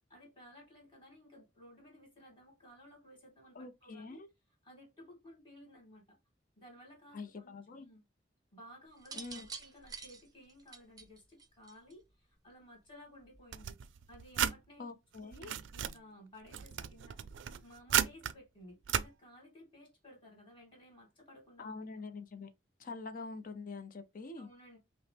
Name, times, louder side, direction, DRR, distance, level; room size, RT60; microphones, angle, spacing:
voice 1, 0.1-4.2 4.6-6.2 6.6-8.0 8.5-14.9 15.2-21.9 24.4-24.8, equal, 30° left, 2.2 m, -57 dB
voice 2, 3.5-4.3 7.1-7.9 9.1-9.5 14.8-15.5 21.6-22.5 22.8-24.5, left 3 dB, 50° left, 0.5 m, -45 dB
sound 1, 9.0-12.1 13.2-13.6, right 5 dB, 20° right, 0.6 m, -48 dB
sound 2, 13.5-14.6 15.2-16.0 16.5-18.3 18.9-19.1, right 9 dB, 85° right, 0.4 m, -34 dB
5.6 x 2.1 x 3.3 m
head